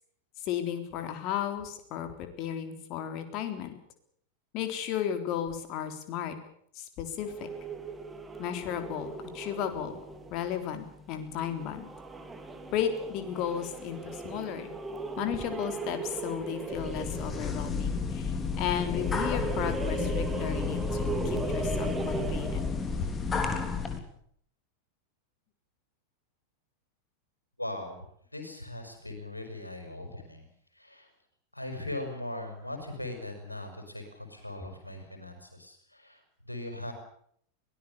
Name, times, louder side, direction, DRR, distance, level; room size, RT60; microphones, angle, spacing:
voice 1, 0.4-3.7 4.5-6.4 6.7-7.5 8.4-10.0 10.3-11.9 12.7-14.7 15.2-22.6 23.0-23.1, left 9 dB, 40° left, 7 dB, 3.8 m, -34 dB
sound 1, 7.2-22.9, right 3 dB, 10° right, 3.2 m, -38 dB
sound 2, 16.7-24.0, left 5 dB, 20° left, 3.5 m, -32 dB
voice 2, 27.6-28.1 28.3-30.5 30.7-31.1 31.5-36.9, left 1 dB, 85° left, 5 dB, 5.6 m, -39 dB
23.0 x 19.0 x 7.0 m, 0.65 s
figure-of-eight pair, 90°, 0 cm